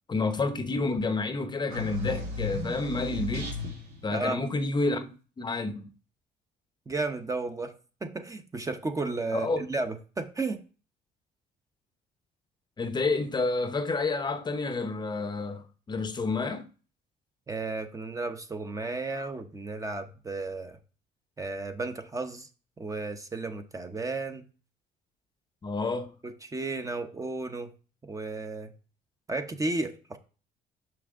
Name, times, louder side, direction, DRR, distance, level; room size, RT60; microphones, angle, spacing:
voice 1, 0.1-3.6 4.0-5.1 5.4-5.9 9.3-9.7 12.8-16.7 25.6-26.1, left 3 dB, 25° left, 0.7 m, -29 dB
sound 1, 1.7-4.0, left 3 dB, 90° right, 2.5 m, -34 dB
voice 2, 6.9-7.7 8.0-10.6 17.5-20.8 21.4-22.5 22.8-24.5 26.2-27.7 28.0-28.7 29.3-30.2, right 3 dB, 20° right, 0.8 m, -33 dB
6.0 x 5.8 x 3.6 m
cardioid pair, 110°, 17 cm